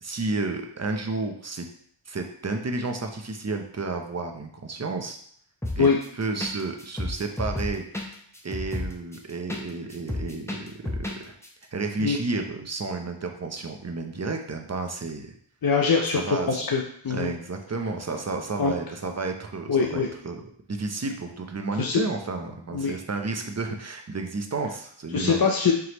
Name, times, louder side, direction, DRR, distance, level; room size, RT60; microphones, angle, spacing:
voice 1, 0.0-1.7 2.1-5.2 5.7-5.9 6.2-7.9 8.4-11.3 11.7-15.3 16.1-16.6 17.1-20.4 20.7-25.4 25.6-25.7, right 3 dB, 35° right, 4 dB, 0.7 m, -31 dB
sound 1, 5.6-6.1 6.4-6.5 6.8-9.6 9.9-11.2 11.4-11.5, left 1 dB, 5° left, 0.7 m, -31 dB
voice 2, 15.6-17.3 18.6-18.7 19.7-20.1 21.8-22.0 22.7-22.9 25.1-25.7, left 5 dB, 45° left, 1 dB, 0.6 m, -23 dB
4.7 x 3.1 x 3.0 m, 0.63 s
wide cardioid pair, 40°, 49 cm